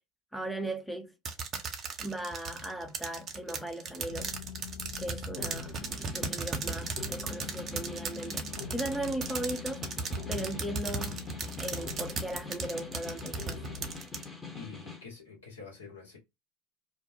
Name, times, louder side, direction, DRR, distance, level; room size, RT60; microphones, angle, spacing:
voice 1, 0.3-1.1 2.0-4.4 5.0-11.2 11.6-13.6, right 1 dB, ahead, 0.6 m, -38 dB
sound 1, 1.3-14.2, right 5 dB, 35° right, 0.7 m, -36 dB
sound 2, 4.0-14.0, left 5 dB, 55° left, 0.8 m, -44 dB
Snare drum, 5.4-15.1, left 4 dB, 20° left, 1.0 m, -45 dB
voice 2, 14.5-16.2, left 4 dB, 80° left, 1.3 m, -47 dB
2.5 x 2.1 x 2.6 m
figure-of-eight pair, 75°, 0 cm